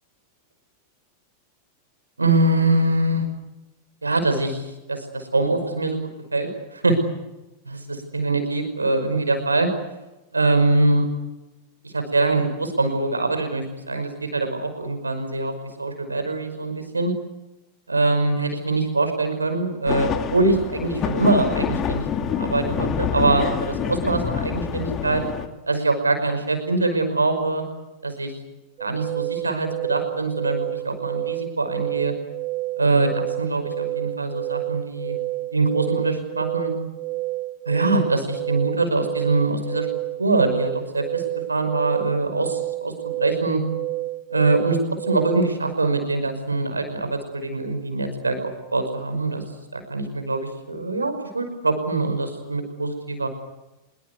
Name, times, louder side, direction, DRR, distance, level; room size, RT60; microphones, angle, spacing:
voice 1, 2.2-3.2 4.0-6.0 6.3-7.0 7.7-9.7 10.3-11.1 11.8-15.5 15.8-17.1 17.9-22.1 22.4-25.2 25.6-27.6 28.0-28.3 28.8-32.1 32.8-35.2 35.5-36.7 37.7-39.9 40.2-41.2 41.5-43.6 44.3-49.4 49.7-53.3, right 2 dB, 80° right, 7 dB, 5.5 m, -23 dB
sound 1, 19.9-25.5, left 8 dB, 30° left, 2.3 m, -27 dB
sound 2, 28.8-45.7, right 18 dB, 35° right, 0.9 m, -30 dB
26.0 x 23.0 x 8.3 m, 1.0 s
figure-of-eight pair, 90°, 0 cm